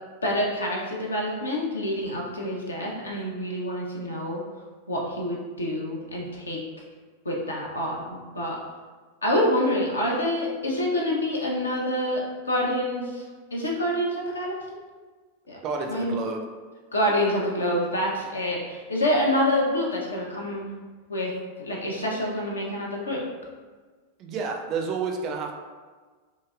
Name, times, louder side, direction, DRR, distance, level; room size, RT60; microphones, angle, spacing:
voice 1, 0.2-4.4 4.9-6.6 7.2-8.6 9.2-13.2 13.5-14.5 15.5-15.6 15.9-16.2 16.9-20.7 21.1-21.3 21.6-23.2, left 1 dB, 75° left, -3 dB, 0.6 m, -27 dB
voice 2, 15.6-16.4 24.2-25.5, right 5 dB, 35° right, 2 dB, 0.4 m, -30 dB
3.0 x 2.7 x 2.4 m, 1.4 s
figure-of-eight pair, 90°, 0 cm